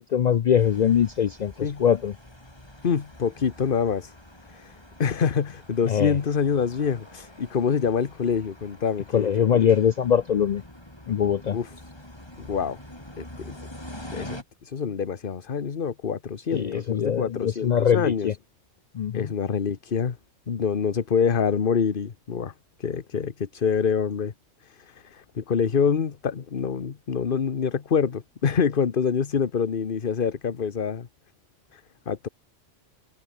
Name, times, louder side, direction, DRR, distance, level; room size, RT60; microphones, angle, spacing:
voice 1, 0.1-2.1 5.9-6.2 9.1-10.6 11.1-11.6 16.5-18.3 18.9-19.3, left 8 dB, 70° left, 0.4 m, -22 dB
sound 1, 0.6-14.4, left 1 dB, 20° left, 4.6 m, -45 dB
voice 2, 2.8-4.1 4.5-4.7 5.0-9.7 11.5-11.7 12.4-12.8 13.2-13.5 14.1-18.3 19.1-20.2 20.5-22.5 22.8-24.3 24.6-31.1 31.7-32.3, left 6 dB, 45° left, 1.2 m, -26 dB
omnidirectional pair, 1.3 m